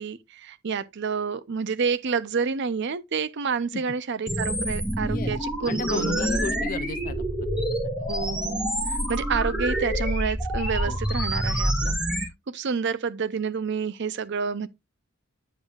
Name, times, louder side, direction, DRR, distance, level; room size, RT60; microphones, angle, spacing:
voice 1, 0.0-6.3 8.1-12.0 12.5-14.7, right 5 dB, 55° right, 0.5 m, -29 dB
sound 1, 4.3-12.3, equal, 5° right, 2.0 m, -27 dB
voice 2, 5.0-5.4 5.7-7.3 10.8-11.0, left 4 dB, 40° left, 0.5 m, -33 dB
8.1 x 8.0 x 2.4 m
head